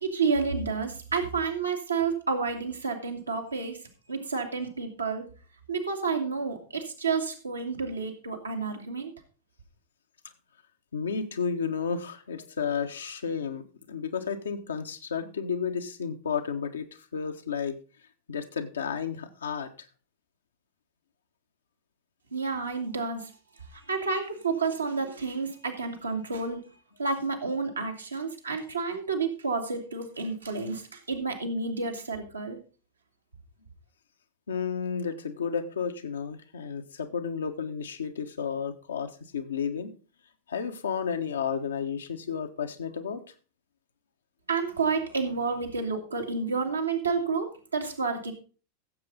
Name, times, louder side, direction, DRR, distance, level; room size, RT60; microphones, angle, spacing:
voice 1, 0.0-3.8 4.1-5.2 5.7-9.1 22.3-23.3 23.6-26.6 27.0-32.6 44.5-48.3, right 4 dB, 80° right, 1 dB, 2.3 m, -30 dB
voice 2, 10.9-17.8 18.3-19.7 34.5-39.9 40.5-43.2, left 6 dB, 70° left, 6 dB, 1.3 m, -32 dB
15.0 x 7.7 x 4.0 m, 0.36 s
figure-of-eight pair, 90°, 0 cm